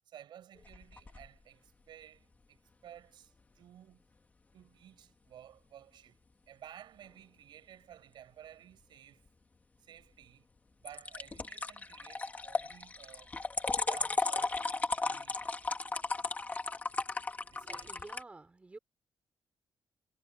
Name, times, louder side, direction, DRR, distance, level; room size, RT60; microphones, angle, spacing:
voice 1, 0.1-4.0 4.5-6.2 6.5-9.3 9.8-10.5 10.8-13.3 13.7-14.7 15.0-15.6 17.5-18.0, right 10 dB, 75° right, 5.9 m, -54 dB
sound 1, 0.6-1.3 10.9-18.2, left 3 dB, 20° left, 1.9 m, -35 dB
voice 2, 17.5-18.8, right 3 dB, 15° right, 4.5 m, -51 dB
wide cardioid pair, 180°, 8 cm